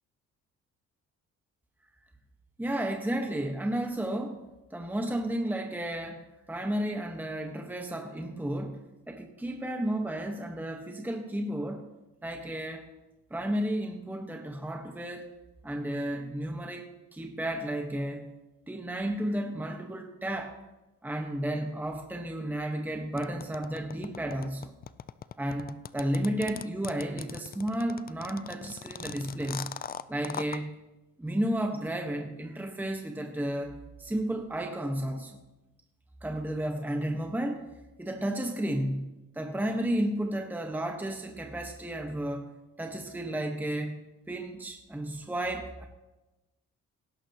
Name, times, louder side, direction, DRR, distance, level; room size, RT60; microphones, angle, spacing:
voice 1, 2.6-4.4 4.7-11.8 12.2-12.9 13.3-15.3 15.6-18.3 18.7-20.6 21.0-24.8 25.4-29.7 30.1-30.7 31.2-35.3 36.2-37.7 38.0-42.5 42.8-44.0 44.3-45.9, right 1 dB, 5° right, 3 dB, 1.2 m, -32 dB
sound 1, 23.2-30.6, left 8 dB, 30° left, 0.4 m, -39 dB
18.0 x 11.0 x 2.9 m, 1.0 s
cardioid pair, 90°, 30 cm